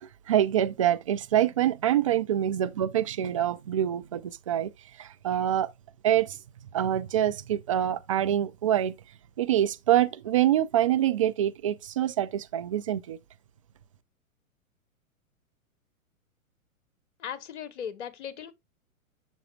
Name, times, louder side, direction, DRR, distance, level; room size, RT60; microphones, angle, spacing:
voice 1, 0.0-4.7 5.0-5.7 6.0-6.4 6.7-8.9 9.4-13.2, right 11 dB, 25° right, 0.3 m, -25 dB
voice 2, 17.2-18.5, left 8 dB, 55° left, 1.1 m, -37 dB
7.1 x 6.9 x 2.3 m
figure-of-eight pair, 110°, 43 cm